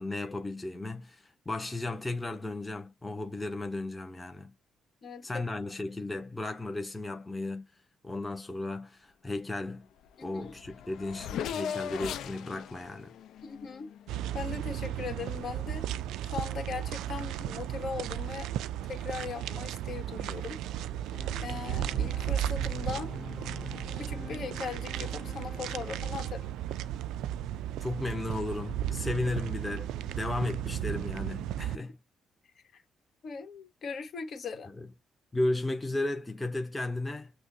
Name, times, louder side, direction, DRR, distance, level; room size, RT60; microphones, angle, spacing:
voice 1, 0.0-4.5 5.2-7.7 8.0-9.9 10.2-13.2 27.8-32.0 34.8-34.9 35.3-37.3, left 2 dB, 15° left, 0.9 m, -34 dB
voice 2, 5.0-5.4 10.2-10.5 13.4-18.5 18.8-20.6 21.4-23.1 23.9-26.5 31.6-31.9 32.7-32.8 33.2-34.7, left 5 dB, 55° left, 1.5 m, -39 dB
Race car auto racing / Accelerating revving vroom, 10.1-10.2 10.4-14.4, left 8 dB, 75° left, 0.6 m, -38 dB
sound 1, 14.1-31.8, right 11 dB, 90° right, 0.4 m, -35 dB
Organ, 21.1-26.9, left 4 dB, 30° left, 0.4 m, -46 dB
6.1 x 2.2 x 2.7 m
cardioid pair, 90°, 0 cm